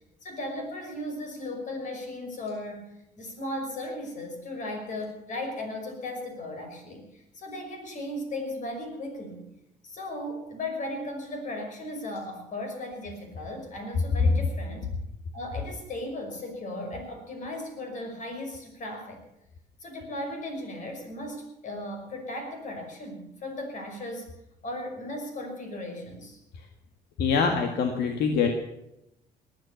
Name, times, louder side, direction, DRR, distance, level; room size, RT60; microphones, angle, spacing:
voice 1, 0.2-2.9 3.2-9.4 9.8-14.9 15.3-19.2 19.8-24.3 24.6-26.4, left 1 dB, 50° left, 4 dB, 5.7 m, -36 dB
voice 2, 27.2-28.5, left 5 dB, 75° left, 4 dB, 1.9 m, -23 dB
19.0 x 10.0 x 7.1 m, 0.84 s
cardioid pair, 110°, 17 cm